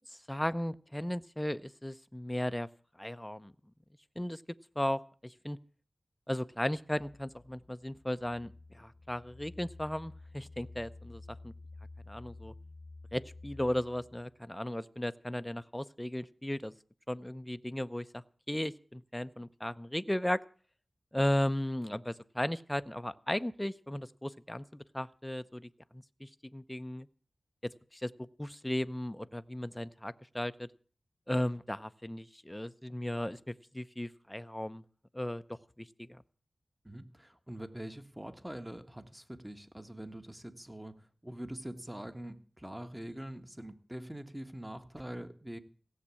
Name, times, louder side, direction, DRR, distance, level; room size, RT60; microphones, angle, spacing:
voice 1, 0.1-2.7 3.0-3.5 4.2-4.4 4.8-5.6 6.3-11.5 12.1-12.5 13.1-16.7 17.1-20.4 21.1-27.1 27.6-28.1 28.4-30.7 31.3-34.8 35.1-35.4 35.8-36.2, left 1 dB, 10° left, 12 dB, 0.7 m, -36 dB
sound 1, 6.5-14.3, left 2 dB, 45° left, 0.9 m, -51 dB
voice 2, 36.8-40.9 41.2-45.6, right 1 dB, 10° right, 8 dB, 1.5 m, -44 dB
16.5 x 7.3 x 8.4 m, 0.43 s
wide cardioid pair, 55°, 0 cm